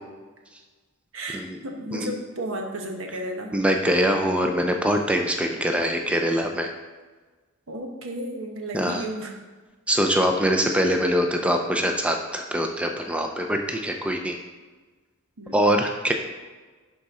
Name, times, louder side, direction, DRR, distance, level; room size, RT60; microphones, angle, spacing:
voice 1, 1.1-3.5 7.7-9.3 15.4-15.6, right 1 dB, 75° right, 2 dB, 1.1 m, -33 dB
voice 2, 3.5-6.7 8.7-9.0 9.9-14.4 15.5-16.1, equal, 5° right, 3 dB, 0.5 m, -23 dB
11.0 x 4.2 x 3.7 m, 1.3 s
head